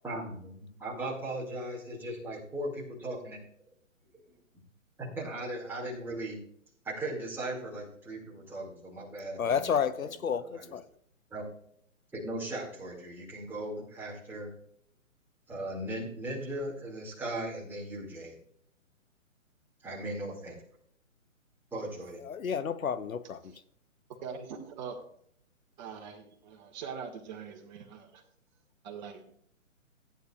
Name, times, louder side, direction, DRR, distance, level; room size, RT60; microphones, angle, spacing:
voice 1, 0.0-3.4 5.0-6.4 6.8-9.7 10.0-10.8 11.3-11.5 12.1-14.5 15.5-18.4 19.8-20.6 21.7-22.2, right 1 dB, 5° right, 2.2 m, -38 dB
voice 2, 9.4-10.8 22.3-23.4, left 7 dB, 90° left, 0.9 m, -30 dB
voice 3, 24.2-25.0 25.8-28.2 28.8-29.2, right 6 dB, 35° right, 1.8 m, -42 dB
15.5 x 9.4 x 2.4 m
hypercardioid pair, 145°, 41 cm